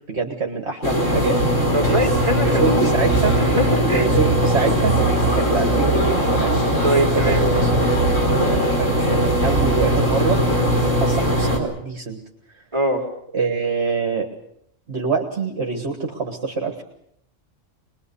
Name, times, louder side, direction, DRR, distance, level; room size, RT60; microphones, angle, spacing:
voice 1, 0.1-1.4 2.4-3.4 3.9-6.6 7.1-10.4 10.8-12.2 13.3-14.3 14.9-16.8, right 4 dB, 55° right, 3 dB, 2.0 m, -25 dB
sound 1, 0.8-11.6, right 1 dB, 70° left, 4.8 m, -19 dB
voice 2, 1.7-2.9 3.3-4.1 5.3-5.4 6.8-7.4 12.7-13.1, right 1 dB, 20° right, 1 dB, 3.7 m, -22 dB
23.5 x 21.0 x 7.0 m, 0.73 s
omnidirectional pair, 1.4 m